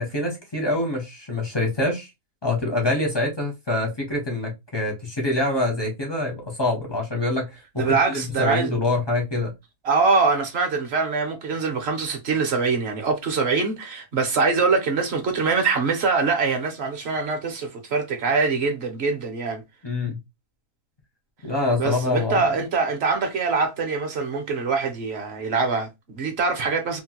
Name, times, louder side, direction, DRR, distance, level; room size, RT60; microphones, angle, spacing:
voice 1, 0.0-2.1 2.4-9.5 19.8-20.2 21.4-22.5, left 2 dB, 35° left, 0.4 m, -25 dB
voice 2, 7.8-8.7 9.8-19.6 21.8-27.0, right 4 dB, 55° right, 0.7 m, -23 dB
2.9 x 2.1 x 2.8 m
omnidirectional pair, 1.6 m